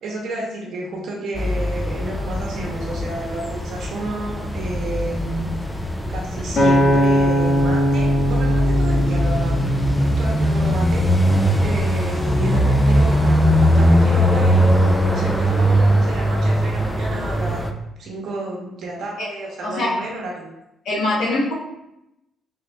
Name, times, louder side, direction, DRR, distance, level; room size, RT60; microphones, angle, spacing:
voice 1, 0.0-9.6 10.0-11.1 11.6-17.6 18.0-20.5, right 2 dB, 65° right, -1 dB, 1.0 m, -31 dB
sound 1, 1.3-17.7, equal, 5° left, 0.4 m, -20 dB
Acoustic guitar, 6.6-10.9 11.5-11.8, equal, 50° left, 1.4 m, -20 dB
voice 2, 19.6-19.9 20.8-21.5, left 2 dB, 70° left, -6 dB, 1.4 m, -22 dB
3.4 x 2.5 x 3.3 m, 0.88 s
cardioid pair, 85°, 0 cm